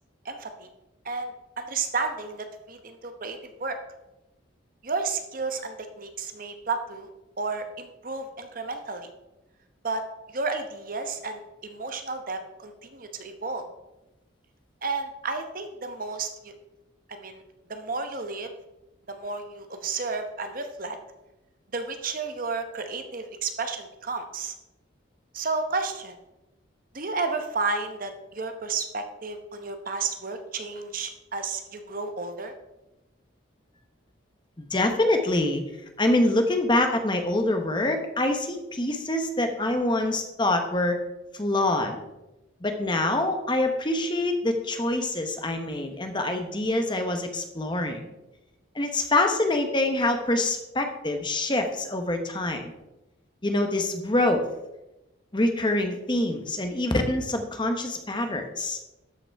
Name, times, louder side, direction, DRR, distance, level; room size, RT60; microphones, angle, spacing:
voice 1, 0.2-0.7 1.0-3.8 4.8-7.1 7.4-9.1 9.8-10.0 10.3-13.6 14.8-16.5 17.1-17.4 17.7-18.5 19.1-21.0 21.7-24.5 25.3-26.1 26.9-32.5, right 4 dB, 45° right, 7 dB, 0.9 m, -32 dB
voice 2, 34.6-35.6 36.0-41.0 41.3-42.0 42.6-48.0 48.7-52.7 53.4-54.5 55.3-58.8, left 2 dB, 25° left, 5 dB, 1.0 m, -25 dB
12.5 x 5.9 x 4.6 m, 0.97 s
head